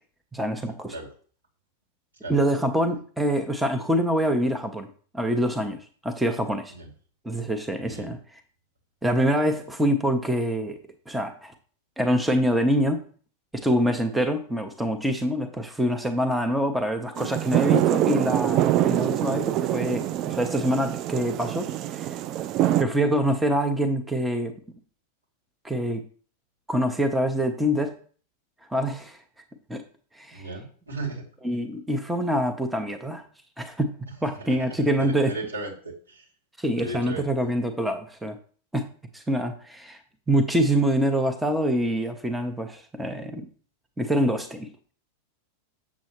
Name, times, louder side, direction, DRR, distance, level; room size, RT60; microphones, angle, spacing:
voice 1, 0.3-0.9 2.3-4.9 5.1-6.7 7.2-8.4 9.0-10.8 11.1-11.5 12.0-13.1 13.5-22.2 22.8-24.5 25.6-26.0 26.7-28.0 28.7-29.2 29.7-29.8 30.1-30.5 31.4-33.2 33.6-35.3 36.6-38.4 38.7-38.8 39.1-40.0 40.3-43.5 44.0-44.7, equal, 5° right, 6 dB, 0.9 m, -25 dB
voice 2, 7.8-8.1 30.3-31.2 34.5-34.6 35.0-36.2 36.8-37.2, right 2 dB, 80° right, -6 dB, 2.7 m, -36 dB
sound 1, 17.2-22.8, right 13 dB, 35° right, 0.3 m, -25 dB
7.3 x 7.3 x 3.0 m, 0.43 s
figure-of-eight pair, 90°, 0 cm